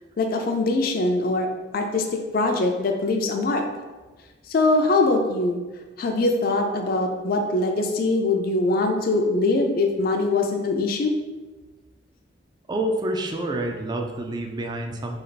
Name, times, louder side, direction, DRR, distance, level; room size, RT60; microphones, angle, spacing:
voice 1, 0.2-1.5 1.7-2.0 2.3-3.6 4.5-5.6 6.0-11.1, left 2 dB, 55° left, 3 dB, 0.4 m, -22 dB
voice 2, 12.7-15.2, right 1 dB, 25° right, 2 dB, 0.3 m, -28 dB
3.2 x 2.4 x 4.0 m, 1.3 s
head